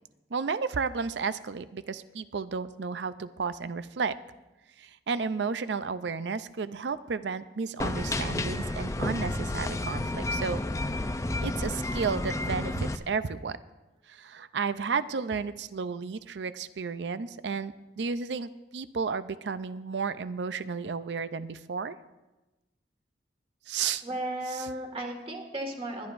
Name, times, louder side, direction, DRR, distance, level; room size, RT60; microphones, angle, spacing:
voice 1, 0.3-4.1 4.8-10.6 11.4-13.6 14.1-22.0 23.7-24.0 24.5-24.7, right 5 dB, 80° right, 13 dB, 0.5 m, -32 dB
sound 1, 7.8-13.0, left 2 dB, 15° left, 0.4 m, -31 dB
voice 2, 24.0-26.1, right 1 dB, 30° right, 2 dB, 1.9 m, -35 dB
21.0 x 11.5 x 2.6 m, 1.1 s
head